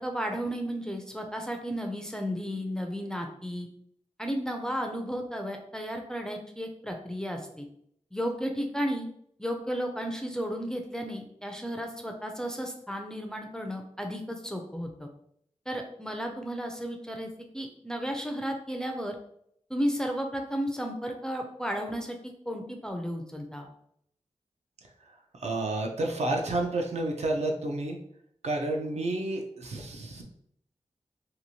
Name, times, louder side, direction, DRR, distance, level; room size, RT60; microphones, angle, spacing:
voice 1, 0.0-3.7 4.2-7.7 8.1-9.1 9.4-15.1 15.7-19.1 19.7-23.7, equal, 5° left, 3 dB, 0.4 m, -33 dB
voice 2, 25.0-28.0 28.4-30.2, right 2 dB, 65° right, 1 dB, 0.5 m, -30 dB
2.9 x 2.5 x 2.7 m, 0.70 s
wide cardioid pair, 95°, 12 cm